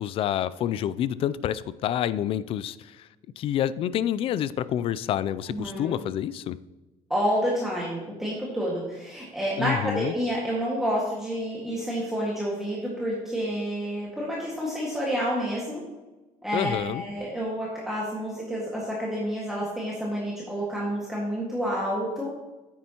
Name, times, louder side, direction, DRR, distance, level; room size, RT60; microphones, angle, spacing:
voice 1, 0.0-3.1 3.4-6.6 9.6-10.1 16.5-17.0, left 10 dB, 45° left, 16 dB, 0.4 m, -28 dB
voice 2, 5.5-5.9 7.1-15.8 16.4-22.3, equal, 5° right, -5 dB, 1.8 m, -29 dB
9.5 x 9.0 x 3.0 m, 1.2 s
cardioid pair, 140°, 13 cm